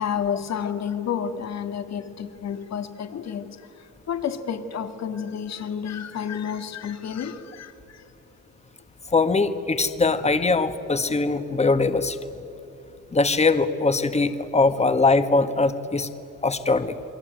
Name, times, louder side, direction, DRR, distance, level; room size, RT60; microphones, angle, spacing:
voice 1, 0.0-3.5 4.1-8.0, left 8 dB, 60° left, 8 dB, 2.3 m, -30 dB
voice 2, 9.1-12.2 13.1-16.1 16.4-17.0, left 3 dB, 20° left, 9 dB, 1.8 m, -21 dB
29.0 x 22.0 x 9.3 m, 2.9 s
cardioid pair, 90°, 30 cm